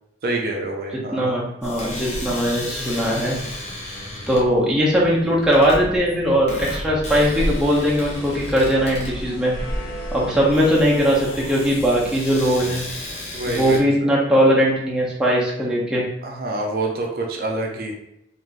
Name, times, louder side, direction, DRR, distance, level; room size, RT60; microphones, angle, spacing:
voice 1, 0.2-1.4 13.3-13.9 16.2-17.9, right 2 dB, 55° right, 1 dB, 0.5 m, -26 dB
voice 2, 0.9-3.4 4.3-9.5 10.1-12.8 13.5-16.0, equal, 5° right, -5 dB, 0.6 m, -19 dB
sound 1, 1.6-13.8, left 1 dB, 40° left, 0.7 m, -34 dB
sound 2, 7.0-12.1, equal, 80° left, 0.9 m, -32 dB
3.3 x 2.6 x 2.4 m, 0.81 s
head